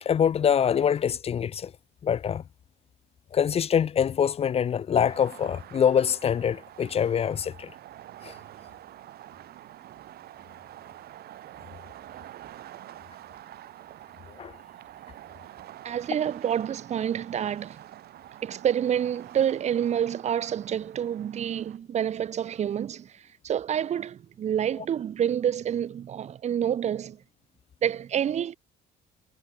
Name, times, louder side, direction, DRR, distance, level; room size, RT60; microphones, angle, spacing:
voice 1, 0.0-1.7 2.0-2.4 3.3-7.7 8.2-8.3 14.4-14.6, left 8 dB, 35° left, 0.6 m, -24 dB
sound 1, 5.0-21.8, right 13 dB, 65° right, 5.1 m, -47 dB
voice 2, 15.8-17.8 18.4-27.2 27.8-28.6, right 9 dB, 40° right, 0.7 m, -28 dB
cardioid pair, 110°, 17 cm